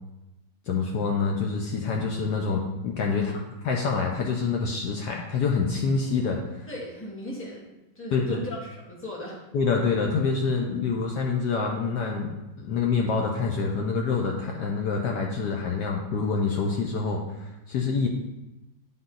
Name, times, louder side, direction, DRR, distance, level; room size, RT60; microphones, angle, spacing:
voice 1, 0.7-3.3 3.6-6.7 8.1-8.4 9.5-18.1, left 5 dB, 70° left, 0 dB, 1.2 m, -26 dB
voice 2, 6.7-7.7 7.9-9.4, left 1 dB, 5° left, -4 dB, 1.3 m, -37 dB
10.0 x 3.8 x 3.9 m, 0.98 s
omnidirectional pair, 2.1 m